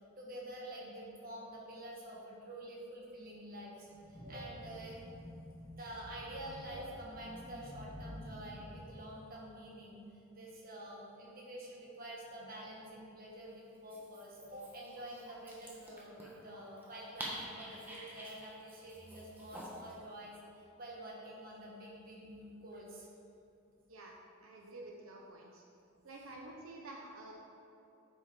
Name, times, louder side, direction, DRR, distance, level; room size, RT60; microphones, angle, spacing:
voice 1, 0.2-5.0 5.7-10.0 10.3-23.1, right 1 dB, 45° right, -4 dB, 1.8 m, -48 dB
sound 1, 3.9-9.0, equal, 15° left, 1.7 m, -50 dB
Dog, 13.7-20.0, equal, 10° right, 1.3 m, -49 dB
voice 2, 24.4-25.6 26.0-27.3, right 2 dB, 90° right, -1 dB, 1.0 m, -50 dB
8.4 x 6.9 x 4.6 m, 2.8 s
head